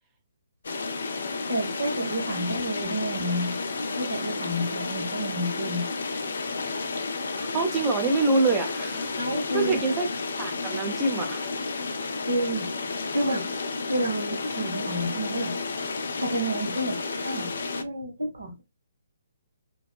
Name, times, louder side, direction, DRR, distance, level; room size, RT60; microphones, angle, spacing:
sound 1, 0.6-17.8, left 3 dB, 60° left, 0.5 m, -31 dB
voice 1, 1.5-3.6 4.0-5.9 9.2-9.8 12.3-12.7 13.1-13.5 13.9-15.5 16.2-17.0 17.2-18.6, equal, 70° right, 0.8 m, -29 dB
voice 2, 7.2-9.1 9.5-10.1 10.4-11.6, right 3 dB, 20° right, 0.6 m, -26 dB
2.8 x 2.1 x 2.2 m
figure-of-eight pair, 130°, 0 cm